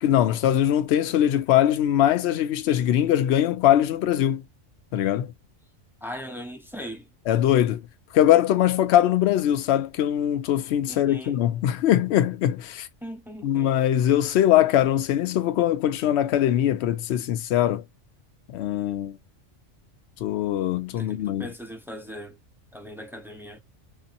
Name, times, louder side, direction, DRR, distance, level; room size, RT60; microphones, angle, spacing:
voice 1, 0.0-4.4 4.9-5.3 7.3-7.8 8.1-12.9 13.4-17.8 18.5-19.2 20.2-21.5, left 11 dB, 65° left, 0.8 m, -22 dB
voice 2, 6.0-7.1 10.9-11.4 13.0-13.7 21.0-22.4 22.7-23.6, equal, 5° right, 0.5 m, -39 dB
2.7 x 2.7 x 2.5 m
omnidirectional pair, 1.3 m